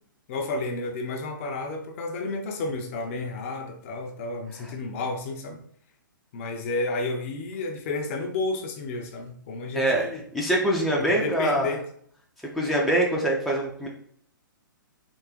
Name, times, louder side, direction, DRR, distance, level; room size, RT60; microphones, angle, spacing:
voice 1, 0.3-5.6 6.3-10.2 11.0-11.8, left 3 dB, 40° left, 3 dB, 0.6 m, -31 dB
voice 2, 9.7-11.7 12.5-13.9, right 1 dB, ahead, -4 dB, 0.5 m, -24 dB
3.6 x 3.0 x 2.9 m, 0.62 s
figure-of-eight pair, 120°, 11 cm